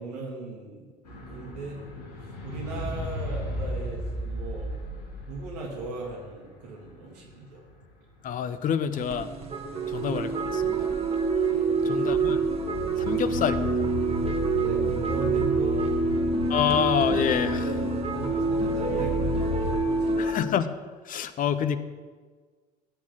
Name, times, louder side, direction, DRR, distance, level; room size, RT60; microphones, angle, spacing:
voice 1, 0.0-1.8 2.4-4.8 5.3-7.6 9.7-9.9 11.5-12.0 12.9-13.1 14.6-16.1 17.5-20.3, right 3 dB, 70° right, -1 dB, 3.0 m, -38 dB
sound 1, 1.1-7.1 7.3-7.5 7.8-8.1 12.2-19.8, left 1 dB, 70° left, 2.8 m, -35 dB
voice 2, 8.2-9.3 9.9-10.9 11.8-12.4 13.0-13.6 16.5-17.7 20.2-20.7 21.0-21.8, left 8 dB, 40° left, 13 dB, 1.0 m, -27 dB
sound 2, 8.9-20.3, right 3 dB, 30° right, 1.9 m, -27 dB
17.0 x 8.8 x 6.1 m, 1.5 s
figure-of-eight pair, 60°, 21 cm